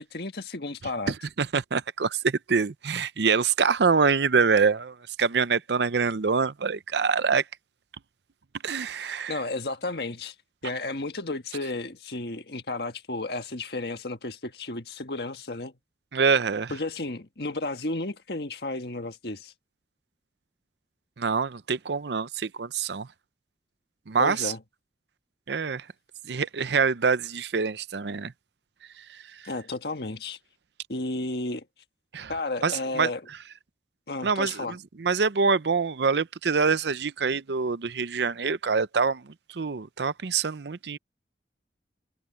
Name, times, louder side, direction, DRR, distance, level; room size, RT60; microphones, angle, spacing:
voice 1, 0.0-1.1 9.0-10.3 10.6-15.7 16.7-19.5 24.2-24.6 29.4-30.4 30.9-31.6 32.3-33.2 34.1-34.8, left 2 dB, 60° left, 1.6 m, -33 dB
voice 2, 1.1-7.4 8.6-9.3 16.1-16.7 21.2-23.1 24.1-24.5 25.5-25.8 26.3-28.3 32.1-32.3 32.6-33.1 34.2-39.2 39.5-41.0, right 5 dB, 75° right, 0.6 m, -25 dB
head